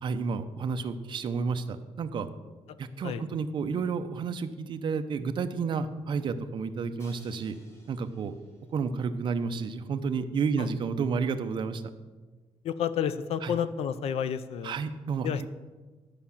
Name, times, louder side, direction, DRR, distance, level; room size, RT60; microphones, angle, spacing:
voice 1, 0.0-2.3 2.8-7.6 7.9-8.4 8.7-11.8 13.4-13.5 14.6-15.5, right 5 dB, 45° right, 8 dB, 0.7 m, -31 dB
Crash cymbal, 7.0-9.0, left 1 dB, 25° left, 1.8 m, -58 dB
voice 2, 12.6-14.7 15.2-15.5, left 8 dB, 65° left, 13 dB, 0.6 m, -30 dB
12.0 x 5.7 x 7.1 m, 1.3 s
cardioid pair, 175°, 11 cm